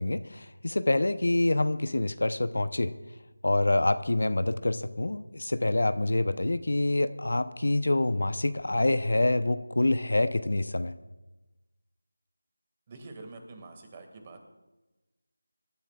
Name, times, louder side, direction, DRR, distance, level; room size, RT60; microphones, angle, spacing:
voice 1, 0.0-2.9 3.4-10.9, left 2 dB, 65° left, 12 dB, 0.8 m, -26 dB
voice 2, 12.9-14.4, right 3 dB, 25° right, 5 dB, 2.0 m, -46 dB
26.0 x 13.5 x 2.4 m, 1.1 s
figure-of-eight pair, 165°, 0 cm